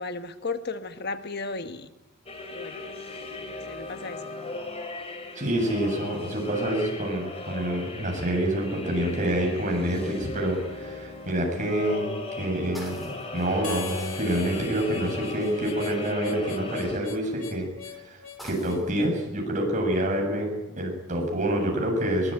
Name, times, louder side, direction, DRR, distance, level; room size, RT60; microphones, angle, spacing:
voice 1, 0.0-1.9 2.5-2.8 3.5-4.2, left 3 dB, 50° left, 9 dB, 1.3 m, -34 dB
sound 1, 2.3-17.0, left 3 dB, 30° left, 3.9 m, -38 dB
voice 2, 5.3-22.3, right 1 dB, 40° right, 1 dB, 7.8 m, -27 dB
sound 2, 12.7-16.9 17.6-19.1, equal, ahead, 6.6 m, -49 dB
Harmonica, 13.6-18.9, left 9 dB, 70° left, 2.5 m, -40 dB
22.5 x 20.0 x 9.1 m, 0.96 s
head